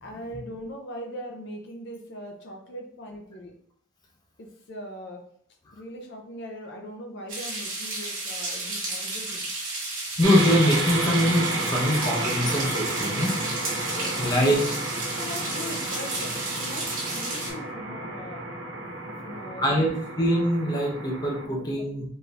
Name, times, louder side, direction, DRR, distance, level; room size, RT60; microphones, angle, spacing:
voice 1, 0.0-3.6 4.4-5.3 5.7-9.5 13.9-18.4 19.2-19.8 21.4-21.9, equal, 55° left, 2 dB, 0.6 m, -40 dB
sound 1, 7.3-17.5, right 2 dB, 40° right, 1.3 m, -32 dB
voice 2, 10.2-13.3 14.2-14.6 19.6-22.0, equal, 20° left, -1 dB, 0.8 m, -23 dB
sound 2, 10.2-21.4, right 2 dB, 90° right, 1.1 m, -32 dB
4.3 x 2.7 x 3.3 m, 0.63 s
head